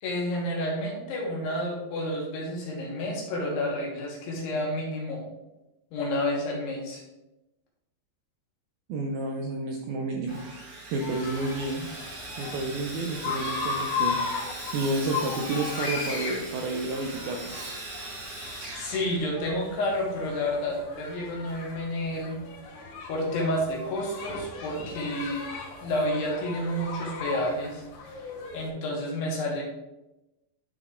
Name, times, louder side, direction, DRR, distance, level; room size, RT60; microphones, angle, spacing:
voice 1, 0.0-5.3 5.9-7.0 18.7-22.4 23.1-25.5 25.8-27.8 28.5-29.6, left 1 dB, 70° left, -2 dB, 3.4 m, -30 dB
voice 2, 8.9-10.4 10.9-11.9 12.4-14.2 14.7-17.6, right 2 dB, 80° right, 1 dB, 2.2 m, -30 dB
Sawing, 10.3-19.7, right 2 dB, 55° right, 2.1 m, -40 dB
sound 1, 11.0-28.7, left 4 dB, 85° left, 3.9 m, -36 dB
11.5 x 4.0 x 3.7 m, 0.96 s
omnidirectional pair, 5.2 m